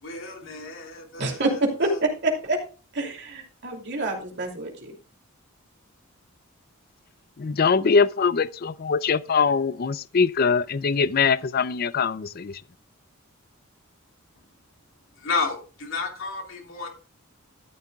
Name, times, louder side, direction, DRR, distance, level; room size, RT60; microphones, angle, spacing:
voice 1, 0.0-2.0 15.1-16.9, left 4 dB, 65° left, 3.3 m, -32 dB
voice 2, 1.2-2.6 2.9-4.9, right 2 dB, 55° right, 2.8 m, -27 dB
voice 3, 7.4-12.6, left 5 dB, 45° left, 0.4 m, -22 dB
13.0 x 11.0 x 2.3 m
head